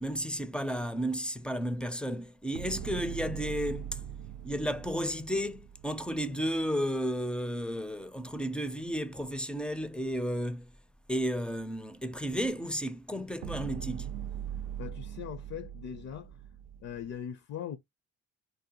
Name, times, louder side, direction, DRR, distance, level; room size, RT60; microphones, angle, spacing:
voice 1, 0.0-4.0 4.4-10.7 11.1-14.1, equal, 5° left, 0.4 m, -33 dB
sound 1, 2.5-6.8 13.4-17.2, right 10 dB, 85° right, 0.5 m, -41 dB
voice 2, 14.8-16.3 16.8-17.8, left 9 dB, 60° left, 0.5 m, -40 dB
2.7 x 2.2 x 2.8 m
cardioid pair, 90°, 30 cm